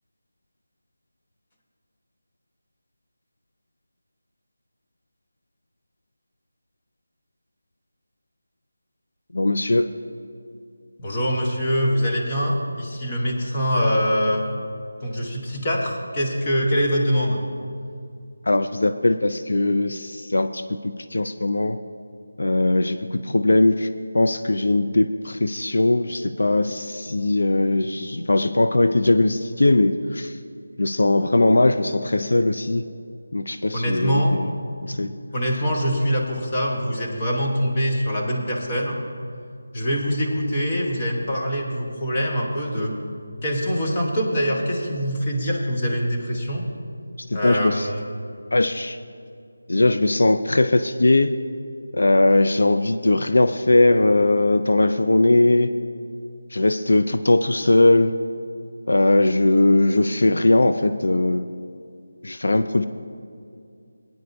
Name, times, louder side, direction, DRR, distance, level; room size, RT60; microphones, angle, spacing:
voice 1, 9.3-9.9 18.5-21.8 22.4-23.9 24.1-30.3 30.8-32.8 33.3-34.5 34.8-35.1 47.3-47.9 48.5-49.0 49.7-51.3 51.9-55.7 56.5-58.1 58.9-61.5 62.2-62.9, left 2 dB, 80° left, 10 dB, 0.4 m, -19 dB
voice 2, 11.0-14.5 15.0-17.4 33.7-34.4 35.3-39.0 39.7-43.0 43.4-46.6 47.3-48.0, equal, 20° left, -1 dB, 1.1 m, -24 dB
19.0 x 9.3 x 2.7 m, 2.4 s
figure-of-eight pair, 175°, 0 cm